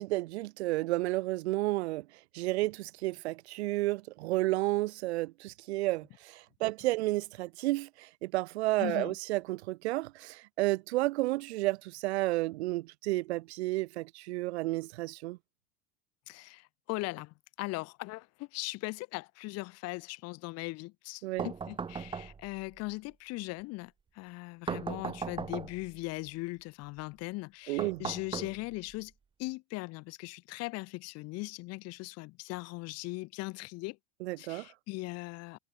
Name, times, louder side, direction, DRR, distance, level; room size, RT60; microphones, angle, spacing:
voice 1, 0.0-2.0 2.3-15.4 21.2-21.5 27.7-28.0 34.2-34.7, right 19 dB, 85° right, 1.4 m, -32 dB
voice 2, 8.8-9.1 16.3-29.1 29.4-34.0 34.4-35.6, left 23 dB, 50° left, 1.3 m, -39 dB
sound 1, 21.4-22.7 24.7-26.0 27.8-29.0, right 5 dB, 15° right, 1.2 m, -38 dB
supercardioid pair, 130°, 32 cm